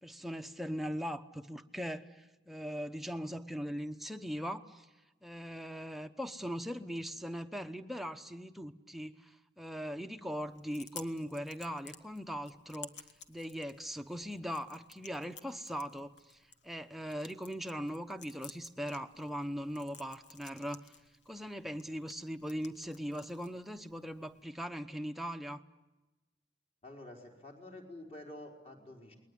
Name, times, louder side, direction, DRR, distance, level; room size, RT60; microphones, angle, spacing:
voice 1, 0.0-4.9 5.2-12.9 13.3-16.4 16.6-20.9 21.3-25.6, equal, ahead, 6 dB, 0.9 m, -40 dB
Chewing mastication, 10.4-24.4, left 6 dB, 80° left, 1.6 m, -55 dB
voice 2, 26.8-29.1, left 1 dB, 35° left, 1 dB, 4.5 m, -49 dB
29.0 x 21.0 x 9.8 m, 1.1 s
head